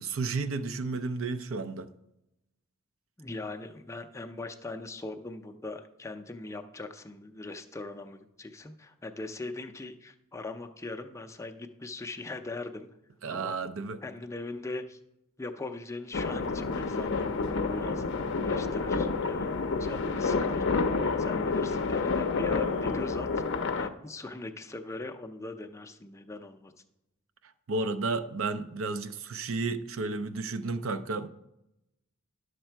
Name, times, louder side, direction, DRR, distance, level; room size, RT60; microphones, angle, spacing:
voice 1, 0.0-1.9 13.2-14.0 27.7-31.3, right 3 dB, 65° right, 0.5 m, -32 dB
voice 2, 3.2-12.9 13.2-13.6 14.0-15.0 15.4-19.5 19.8-20.6 21.2-23.3 23.8-26.7, left 2 dB, 15° left, 0.5 m, -40 dB
sound 1, 16.1-23.9, left 4 dB, 55° left, 0.6 m, -29 dB
11.0 x 6.6 x 4.4 m
head